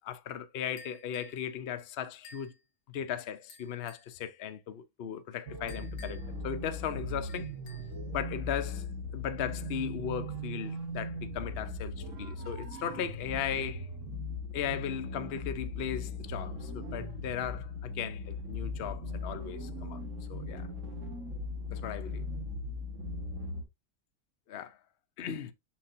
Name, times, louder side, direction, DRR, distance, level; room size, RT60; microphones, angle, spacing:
voice 1, 0.0-2.5 2.9-7.5 8.1-8.9 9.1-13.9 14.5-20.0 20.3-20.7 21.7-22.2 24.5-24.8 25.2-25.5, left 9 dB, 55° left, 0.9 m, -37 dB
sound 1, 0.8-1.4 2.2-2.6 3.5-4.1 5.7-6.4 7.3-8.0, left 2 dB, 75° left, 1.7 m, -53 dB
sound 2, 5.5-23.6, left 2 dB, 60° right, 2.0 m, -39 dB
7.4 x 5.6 x 2.7 m
omnidirectional pair, 1.5 m